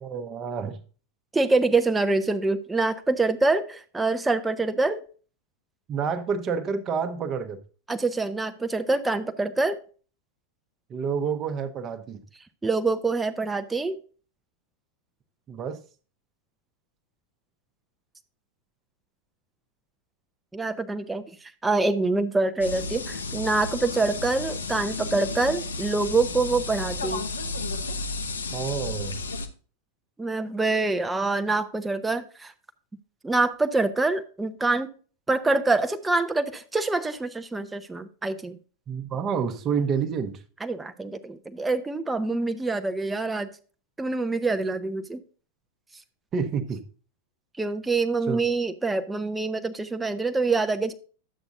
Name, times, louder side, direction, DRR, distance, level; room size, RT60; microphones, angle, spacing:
voice 1, 0.0-0.8 5.9-7.6 10.9-12.2 15.5-15.8 28.5-29.2 38.9-40.4 46.3-46.8 48.3-48.4, right 6 dB, 30° right, 1.0 m, -28 dB
voice 2, 1.3-5.0 7.9-9.8 12.6-14.0 20.5-27.2 30.2-32.5 33.2-34.9 35.3-38.6 40.6-43.5 44.0-45.2 47.6-50.9, right 3 dB, 10° right, 0.7 m, -25 dB
sound 1, 22.6-29.5, left 3 dB, 75° left, 0.9 m, -32 dB
11.0 x 8.1 x 2.6 m
figure-of-eight pair, 90°, 0 cm